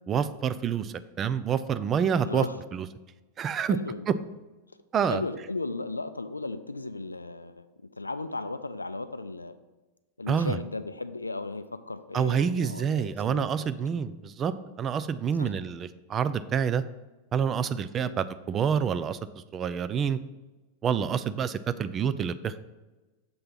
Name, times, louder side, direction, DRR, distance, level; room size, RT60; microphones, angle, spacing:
voice 1, 0.1-2.4 2.7-2.9 3.4-3.8 4.1-4.2 4.9-5.2 10.3-10.6 12.1-14.5 14.8-16.8 17.3-19.2 19.5-20.2 20.8-22.6, right 7 dB, 25° right, 12 dB, 0.3 m, -27 dB
voice 2, 2.2-2.6 3.7-4.2 5.1-7.7 8.0-9.5 10.2-13.7 15.4-15.5 18.0-18.2, left 2 dB, 80° left, 11 dB, 0.4 m, -36 dB
6.9 x 3.3 x 5.5 m, 1.1 s
figure-of-eight pair, 90°, 0 cm